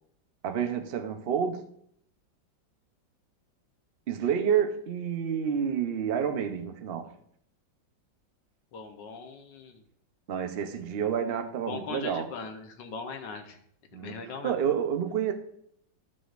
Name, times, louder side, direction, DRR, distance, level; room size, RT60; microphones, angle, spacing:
voice 1, 0.4-1.7 4.1-7.1 10.3-12.3 13.9-15.3, right 8 dB, 85° right, 0.5 m, -29 dB
voice 2, 8.7-9.8 11.7-13.6 14.0-14.6, left 5 dB, 70° left, 1.5 m, -40 dB
13.0 x 6.1 x 2.5 m
omnidirectional pair, 2.1 m